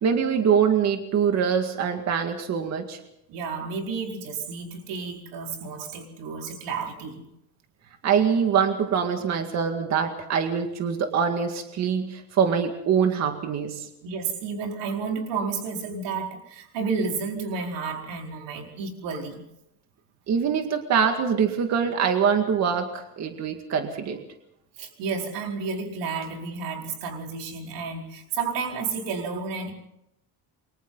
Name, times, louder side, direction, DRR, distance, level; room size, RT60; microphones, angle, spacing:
voice 1, 0.0-3.0 8.0-13.9 20.3-24.2, right 7 dB, 40° right, 5 dB, 2.1 m, -24 dB
voice 2, 3.3-7.3 14.0-19.4 24.8-29.7, right 5 dB, 90° right, 1 dB, 4.8 m, -31 dB
28.5 x 24.0 x 4.0 m, 0.81 s
cardioid pair, 175°, 41 cm